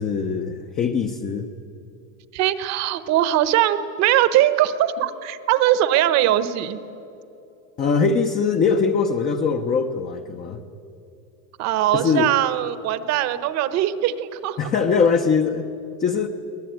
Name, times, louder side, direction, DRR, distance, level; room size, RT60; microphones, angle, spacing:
voice 1, 0.0-1.5 7.8-10.6 11.9-12.3 14.6-15.7 16.0-16.3, left 5 dB, 20° left, 4 dB, 0.7 m, -21 dB
voice 2, 2.3-6.8 11.6-14.7, right 12 dB, 35° right, 13 dB, 1.1 m, -21 dB
23.5 x 18.5 x 9.2 m, 2.8 s
supercardioid pair, 155°, 46 cm